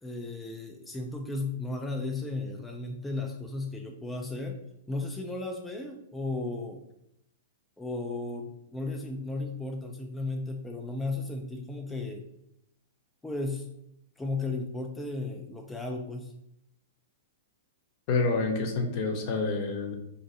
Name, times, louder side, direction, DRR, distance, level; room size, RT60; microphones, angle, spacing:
voice 1, 0.0-4.6 4.9-6.8 7.8-12.3 13.2-13.7 14.2-16.3, left 2 dB, 10° left, 1 dB, 0.3 m, -35 dB
voice 2, 18.1-20.0, left 3 dB, 45° left, 3 dB, 0.7 m, -28 dB
2.6 x 2.4 x 4.1 m, 0.80 s
hypercardioid pair, 120°, 0 cm